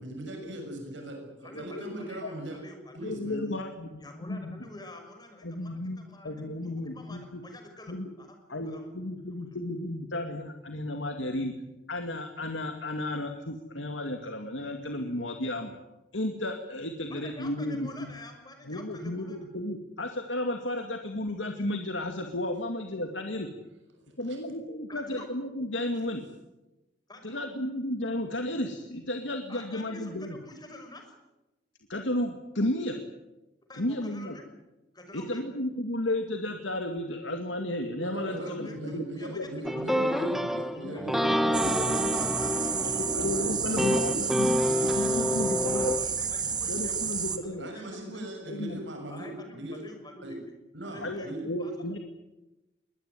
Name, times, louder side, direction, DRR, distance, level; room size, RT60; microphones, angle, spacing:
voice 1, 0.0-2.6 2.9-3.5 24.3-24.4 38.0-42.2 43.1-44.3 44.6-45.5 47.6-49.8 50.2-50.4 50.7-51.5, right 1 dB, 75° right, 2 dB, 6.9 m, -39 dB
voice 2, 1.4-3.1 4.0-8.9 9.3-9.4 17.1-19.5 24.9-25.3 27.1-27.4 29.5-31.1 33.7-34.5 34.9-35.4 38.2-40.0 40.9-41.6 41.9-42.9 43.8-44.4 45.4-48.3 49.1-50.4 50.8-52.0, left 1 dB, 20° left, 5 dB, 6.0 m, -47 dB
voice 3, 3.0-3.9 4.2-4.6 5.4-6.0 6.2-7.4 7.9-8.1 8.5-11.5 11.9-15.8 16.1-18.1 18.7-23.5 24.2-26.2 27.2-30.4 31.9-33.0 33.8-34.3 35.1-39.5 39.8-40.5 40.7-41.0 41.4-41.7 42.6-42.7 42.9-44.6 44.9-46.0 46.7-47.7 48.5-48.8 51.0-52.0, left 1 dB, 80° left, 5 dB, 2.2 m, -33 dB
sound 1, 39.6-46.0, equal, ahead, 1.4 m, -28 dB
sound 2, 41.5-47.4, right 6 dB, 25° right, 2.2 m, -31 dB
22.5 x 20.0 x 9.7 m, 1.0 s
head